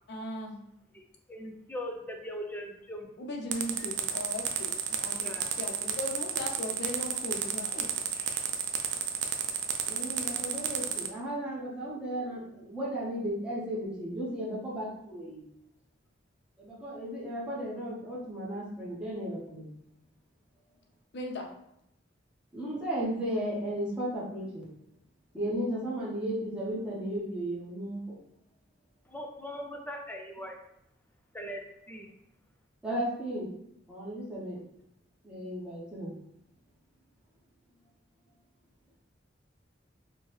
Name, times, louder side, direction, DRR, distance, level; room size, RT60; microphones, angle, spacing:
voice 1, 0.1-0.6 3.2-7.9 21.1-21.5, left 1 dB, 65° left, 2 dB, 0.6 m, -38 dB
voice 2, 0.9-3.1 3.8-3.9 5.1-5.5 8.0-9.1 29.1-30.6 31.3-32.1, equal, 10° left, 2 dB, 0.5 m, -41 dB
sound 1, 3.5-11.1, right 9 dB, 80° right, 0.4 m, -31 dB
voice 3, 9.8-15.4 16.6-19.6 22.5-24.7 25.3-28.2 32.8-33.5 33.9-34.6 35.2-36.1, right 1 dB, 5° right, -8 dB, 0.8 m, -35 dB
4.5 x 2.2 x 3.2 m, 0.77 s
head